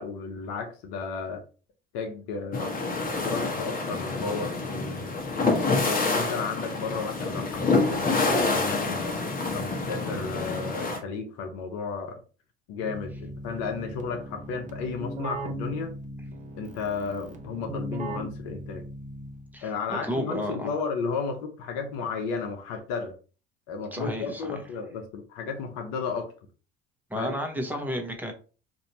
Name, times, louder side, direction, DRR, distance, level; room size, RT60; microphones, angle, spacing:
voice 1, 0.0-1.4 1.9-2.7 3.2-5.2 5.8-9.0 9.5-12.2 12.7-15.9 16.5-18.8 19.6-23.1 23.7-26.3 27.1-27.4, left 5 dB, 65° left, 5 dB, 0.9 m, -33 dB
sound 1, 2.5-11.0, left 3 dB, 30° left, 1.1 m, -27 dB
Keyboard (musical), 12.8-19.7, right 1 dB, 25° right, 0.8 m, -38 dB
voice 2, 19.5-20.7 23.9-24.6 27.1-28.3, equal, 5° right, 2 dB, 1.1 m, -32 dB
4.1 x 2.7 x 2.7 m, 0.36 s
hypercardioid pair, 60°, 30 cm